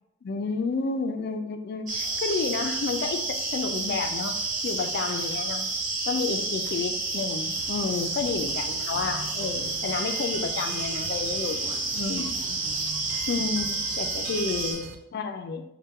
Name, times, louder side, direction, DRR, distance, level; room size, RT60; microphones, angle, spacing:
voice 1, 0.2-3.2 3.5-4.3 4.6-5.6 6.1-12.9 13.3-15.6, left 4 dB, 55° left, 8 dB, 0.3 m, -31 dB
sound 1, 1.9-14.7, right 3 dB, 40° right, 1.0 m, -30 dB
sound 2, 7.6-14.9, right 4 dB, 85° right, 0.4 m, -43 dB
4.2 x 2.2 x 3.5 m, 0.85 s
head